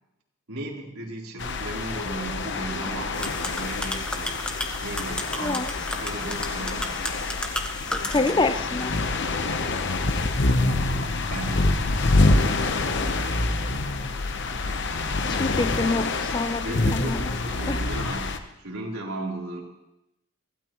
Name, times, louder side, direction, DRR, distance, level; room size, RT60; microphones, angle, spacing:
voice 1, 0.5-6.9 10.6-11.8 13.2-13.9 16.6-19.6, right 2 dB, 85° right, -3 dB, 3.7 m, -36 dB
sound 1, 1.4-18.4, left 2 dB, 55° left, 1.0 m, -26 dB
sound 2, 3.1-8.3, left 1 dB, 5° left, 1.1 m, -33 dB
voice 2, 8.1-8.9 15.3-17.2 17.7-17.8, left 3 dB, 20° left, 12 dB, 0.5 m, -26 dB
24.0 x 16.0 x 3.1 m, 0.90 s
head